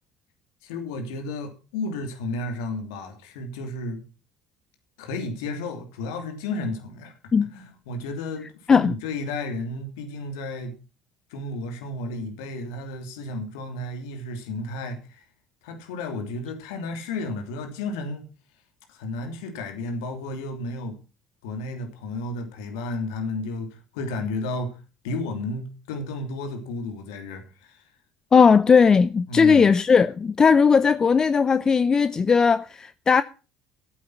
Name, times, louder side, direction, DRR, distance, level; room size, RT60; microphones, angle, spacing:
voice 1, 0.6-4.0 5.0-7.1 7.5-10.7 11.3-15.2 15.6-18.3 18.9-21.0 21.4-24.8 25.0-27.8 29.3-29.7, left 2 dB, 75° left, 3.0 m, -32 dB
voice 2, 28.3-33.2, left 5 dB, 30° left, 0.6 m, -17 dB
14.0 x 8.5 x 5.9 m
hypercardioid pair, 65°, 2 cm